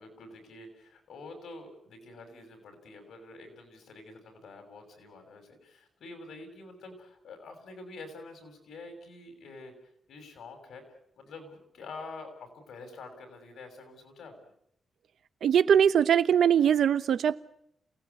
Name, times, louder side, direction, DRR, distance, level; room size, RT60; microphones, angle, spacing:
voice 1, 0.0-9.7 10.1-10.8 11.1-14.4, left 3 dB, 80° left, 6 dB, 7.1 m, -47 dB
voice 2, 15.4-17.4, right 8 dB, 80° right, 14 dB, 1.0 m, -22 dB
28.0 x 18.5 x 8.5 m, 0.74 s
wide cardioid pair, 145°, 0 cm